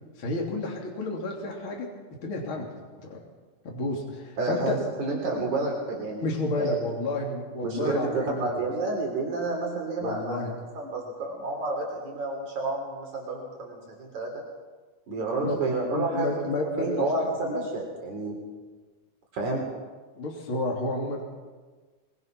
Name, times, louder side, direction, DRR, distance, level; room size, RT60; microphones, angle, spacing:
voice 1, 0.2-1.9 2.2-2.7 3.0-3.2 3.6-4.8 6.2-8.6 10.0-10.6 15.4-17.7 20.2-21.2, left 2 dB, 40° left, -1 dB, 3.7 m, -31 dB
voice 2, 4.4-6.3 6.6-6.7 7.6-10.4 10.7-14.3 15.1-16.5 16.8-18.4 19.3-19.6, right 2 dB, 70° right, -1 dB, 4.7 m, -30 dB
23.0 x 22.5 x 6.1 m, 1.4 s
omnidirectional pair, 3.6 m